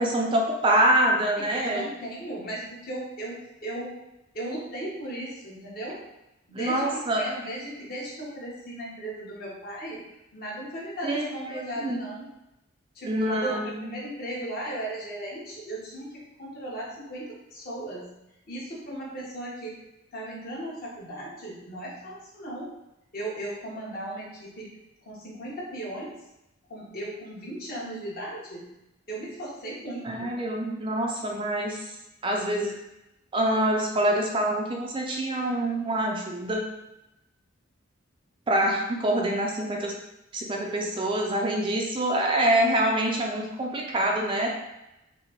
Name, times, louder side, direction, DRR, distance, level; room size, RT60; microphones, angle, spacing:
voice 1, 0.0-1.8 6.5-7.2 11.0-11.3 11.8-12.0 13.0-13.9 30.0-31.9 32.2-32.8 33.3-36.6 38.5-39.9 40.3-44.5, right 1 dB, 25° right, 0 dB, 0.4 m, -25 dB
voice 2, 1.4-4.0 4.3-6.0 6.5-10.0 10.3-12.3 12.9-18.1 18.5-19.8 20.1-22.7 23.1-24.7 25.0-26.1 26.7-28.7 29.1-30.3, right 1 dB, 45° left, -6 dB, 1.2 m, -36 dB
5.6 x 2.1 x 3.0 m, 0.92 s
head